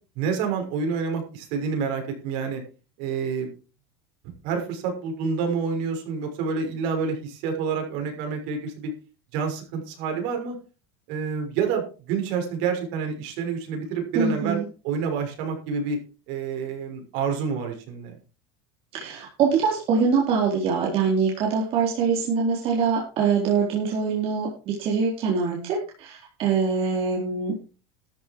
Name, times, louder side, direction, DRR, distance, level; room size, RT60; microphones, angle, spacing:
voice 1, 0.1-2.6 3.0-3.5 4.4-8.9 9.3-10.5 11.1-14.6 14.8-16.0 16.3-18.2, right 5 dB, 65° right, 3 dB, 6.3 m, -28 dB
voice 2, 14.1-14.6 18.9-27.6, right 5 dB, 45° right, -1 dB, 3.8 m, -24 dB
13.0 x 11.0 x 4.7 m, 0.35 s
supercardioid pair, 130°, 13 cm